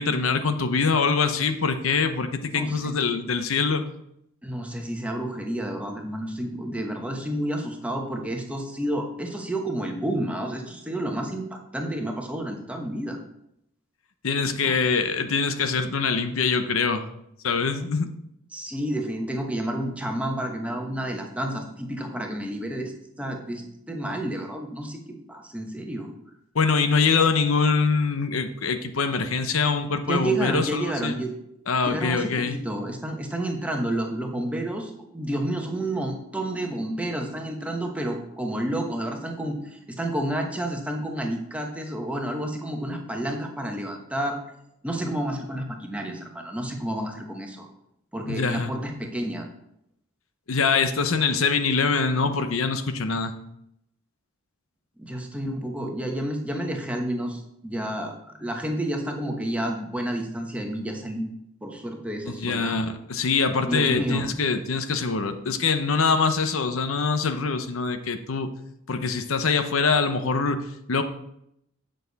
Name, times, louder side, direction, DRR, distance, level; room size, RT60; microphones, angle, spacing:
voice 1, 0.0-3.8 14.2-17.1 17.4-18.1 26.5-31.2 31.7-32.6 48.3-48.7 50.5-53.3 62.3-68.5 68.9-71.0, left 4 dB, 80° left, 8 dB, 0.8 m, -24 dB
voice 2, 2.5-3.0 4.4-13.2 14.6-14.9 18.5-25.0 25.3-26.1 30.1-31.3 31.8-44.4 44.8-47.7 48.1-49.5 55.0-61.3 61.6-62.8 63.7-64.3, right 1 dB, 5° right, 2 dB, 1.1 m, -30 dB
9.0 x 6.5 x 4.1 m, 0.77 s
head